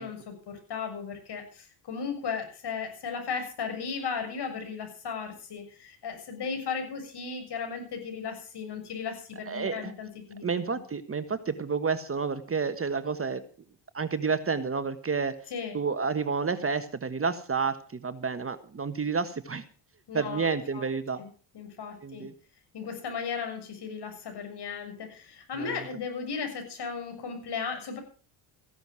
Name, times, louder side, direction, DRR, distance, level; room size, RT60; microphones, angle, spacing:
voice 1, 0.0-10.5 15.5-15.7 20.1-20.5 20.7-20.9 21.2-21.3 21.5-22.2 22.7-28.0, left 6 dB, 55° left, 5 dB, 7.0 m, -36 dB
voice 2, 9.5-9.9 10.4-13.4 13.9-15.4 15.7-19.6 20.1-21.2 22.0-22.3 25.6-25.9, right 5 dB, 25° right, 11 dB, 1.4 m, -30 dB
15.5 x 11.5 x 6.2 m, 0.38 s
cardioid pair, 90°, 49 cm